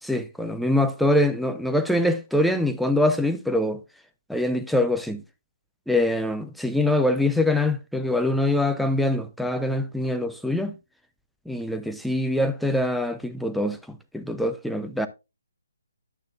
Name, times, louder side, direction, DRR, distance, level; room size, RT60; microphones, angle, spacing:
voice 1, 0.0-3.8 4.3-5.2 5.9-10.7 11.5-15.1, left 1 dB, ahead, 0.6 m, -24 dB
10.0 x 8.9 x 2.4 m
figure-of-eight pair, 140°, 0 cm